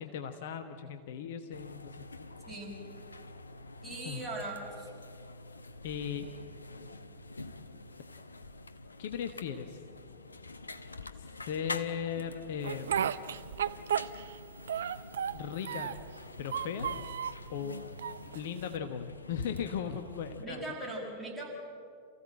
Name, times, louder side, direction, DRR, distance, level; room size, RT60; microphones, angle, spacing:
voice 1, 0.0-2.1 4.0-4.2 5.8-6.2 9.0-9.8 11.2-13.1 15.3-16.0 16.4-16.9 17.5-17.8 18.3-20.7, left 8 dB, 55° left, 8 dB, 1.1 m, -37 dB
sound 1, 1.5-20.5, left 3 dB, 80° left, 0.9 m, -46 dB
voice 2, 3.8-4.9 20.4-21.5, right 2 dB, 5° right, -4 dB, 6.8 m, -40 dB
Speech, 12.6-14.4 14.7-16.1 16.4-17.4 18.0-18.8, right 9 dB, 65° right, 0.6 m, -34 dB
28.0 x 15.5 x 7.7 m, 2.3 s
figure-of-eight pair, 90°, 0 cm